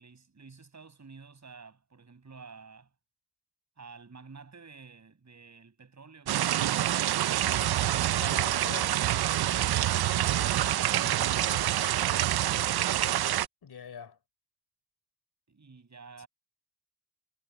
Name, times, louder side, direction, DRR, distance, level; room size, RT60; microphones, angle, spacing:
voice 1, 0.0-2.9 3.8-7.2 9.6-11.8 12.1-13.0 15.5-16.3, right 5 dB, 45° right, 6.5 m, -51 dB
sound 1, 6.3-13.5, right 12 dB, 80° right, 0.5 m, -27 dB
voice 2, 8.2-9.0 10.9-11.3 13.6-14.2 16.2-16.3, left 7 dB, 85° left, 3.8 m, -44 dB
wide cardioid pair, 105°, 37 cm